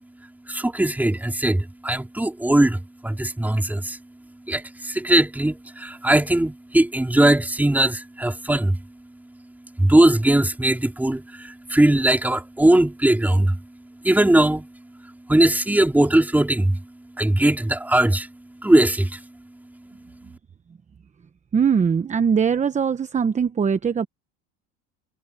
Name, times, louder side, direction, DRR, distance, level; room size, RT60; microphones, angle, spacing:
voice 1, 0.5-4.0 4.5-8.9 9.8-13.6 14.0-14.7 15.3-16.9 17.2-18.3 18.6-19.3, right 1 dB, 5° right, 3.5 m, -20 dB
voice 2, 21.5-24.1, right 6 dB, 20° right, 1.1 m, -21 dB
supercardioid pair, 115°, 33 cm